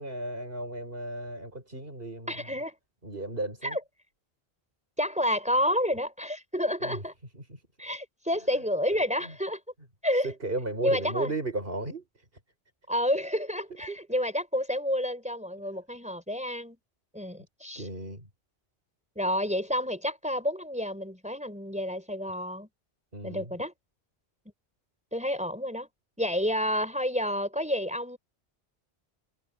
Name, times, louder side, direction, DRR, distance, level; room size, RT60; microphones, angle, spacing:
voice 1, 0.0-2.3 3.0-3.8 6.8-7.0 7.3-7.6 9.3-9.4 10.2-12.0 13.9-14.0 17.8-18.3 23.1-23.5, right 2 dB, 60° right, 6.1 m, -35 dB
voice 2, 2.3-2.7 3.6-3.8 5.0-7.1 7.8-9.6 10.0-10.3 10.8-11.3 12.9-16.8 17.1-17.9 19.1-22.7 23.2-23.7 25.1-25.9 26.2-28.2, equal, 5° right, 4.7 m, -29 dB
omnidirectional pair, 1.1 m